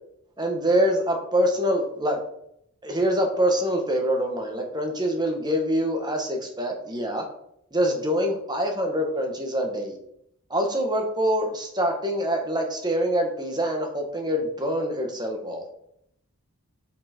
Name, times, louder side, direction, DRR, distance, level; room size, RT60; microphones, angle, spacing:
voice 1, 0.4-2.2 2.8-7.2 7.7-10.0 10.5-15.6, equal, 20° right, 3 dB, 1.7 m, -25 dB
7.7 x 6.8 x 4.6 m, 0.73 s
head